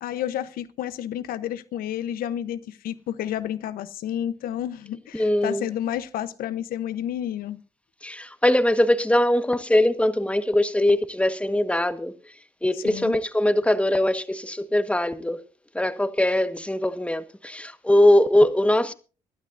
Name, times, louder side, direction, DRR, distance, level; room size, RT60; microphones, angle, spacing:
voice 1, 0.0-7.6 12.7-13.2, left 11 dB, 85° left, 0.9 m, -30 dB
voice 2, 5.1-5.6 8.0-12.1 12.6-15.4 15.7-18.9, left 1 dB, 10° left, 1.4 m, -21 dB
24.0 x 12.0 x 2.6 m
cardioid pair, 65°, 15 cm